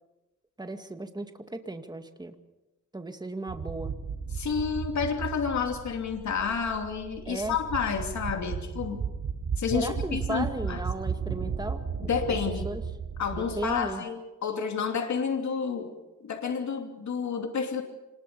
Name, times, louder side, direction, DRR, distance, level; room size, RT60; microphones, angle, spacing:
voice 1, 0.6-2.3 2.9-3.9 7.3-7.6 9.7-12.1 12.6-12.8 13.3-14.0, right 2 dB, 15° right, 7 dB, 2.0 m, -35 dB
sound 1, 3.5-13.8, right 6 dB, 55° right, 5.4 m, -35 dB
voice 2, 4.3-9.0 9.6-10.8 12.1-12.6 13.2-15.9 16.2-17.8, left 6 dB, 65° left, 4 dB, 2.9 m, -30 dB
26.0 x 20.5 x 6.9 m, 1.0 s
cardioid pair, 95°, 31 cm